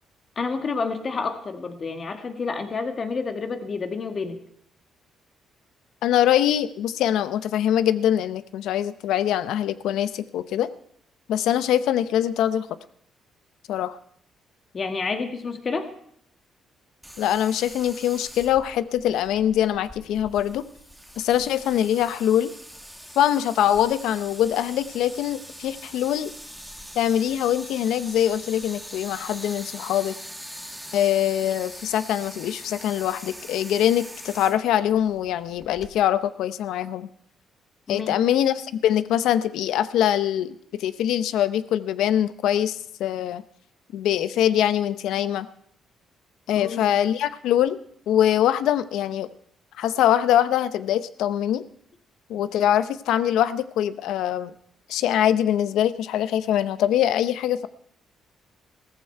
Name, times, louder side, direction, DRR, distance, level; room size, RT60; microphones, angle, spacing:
voice 1, 0.3-4.4 14.7-15.9 37.9-38.1 46.5-46.9, left 4 dB, 45° left, 6 dB, 1.7 m, -29 dB
voice 2, 6.0-10.7 11.3-12.7 13.7-14.0 17.2-20.6 21.2-22.5 23.2-26.3 27.0-30.2 30.9-37.1 37.9-43.4 43.9-45.5 46.5-47.8 48.1-49.3 49.8-51.6 52.3-54.5 54.9-57.7, left 11 dB, 85° left, 14 dB, 0.6 m, -23 dB
sound 1, 17.0-35.9, equal, ahead, 1.8 m, -42 dB
15.5 x 14.5 x 4.5 m, 0.69 s
cardioid pair, 90°, 0 cm